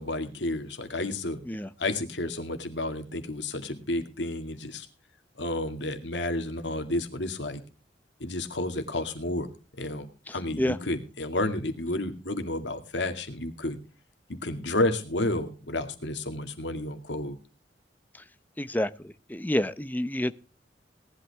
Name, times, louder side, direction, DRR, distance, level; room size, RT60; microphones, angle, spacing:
voice 1, 0.0-1.4 1.8-4.9 5.4-7.6 8.2-9.5 9.8-13.8 14.3-17.4, left 1 dB, 90° left, 7 dB, 2.2 m, -31 dB
voice 2, 10.3-10.8 18.6-20.3, left 1 dB, 10° left, 13 dB, 0.7 m, -29 dB
18.0 x 11.5 x 3.5 m, 0.34 s
head